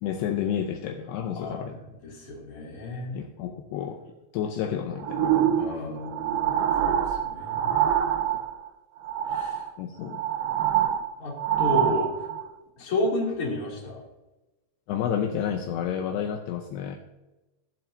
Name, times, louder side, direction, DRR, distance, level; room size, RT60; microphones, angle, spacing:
voice 1, 0.0-1.8 3.1-4.1 4.3-5.6 8.3-8.4 9.8-10.2 12.8-12.9 14.9-17.0, left 9 dB, 80° left, 4 dB, 2.6 m, -30 dB
voice 2, 1.3-3.2 5.6-7.8 9.3-9.6 11.2-11.3 11.6-12.1 12.8-14.0, left 2 dB, 35° left, -3 dB, 3.3 m, -32 dB
sound 1, 5.0-8.7 9.0-9.7 10.0-12.5 13.1-13.2, right 10 dB, 90° right, 2.0 m, -25 dB
17.0 x 7.7 x 2.7 m, 1.1 s
omnidirectional pair, 5.2 m